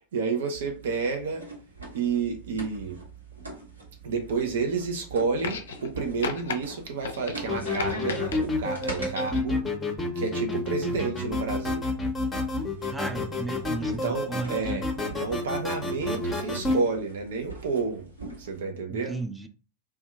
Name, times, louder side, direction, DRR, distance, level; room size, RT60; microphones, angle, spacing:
voice 1, 0.0-1.5 1.9-3.0 4.0-9.6 10.2-11.9 13.8-18.1 18.4-19.2, right 4 dB, 60° right, 0.5 m, -30 dB
sound 1, 0.5-9.1 10.4-18.6, right 2 dB, 75° right, 1.1 m, -43 dB
sound 2, 5.4-5.9 6.2-6.6 7.0-8.4 8.8-9.5 10.5-10.6, left 5 dB, 65° left, 0.4 m, -35 dB
sound 3, 7.5-16.8, left 2 dB, 15° left, 0.7 m, -29 dB
voice 2, 12.9-14.9 18.9-19.5, right 3 dB, 5° right, 0.3 m, -35 dB
2.6 x 2.3 x 3.3 m
figure-of-eight pair, 90°, 0 cm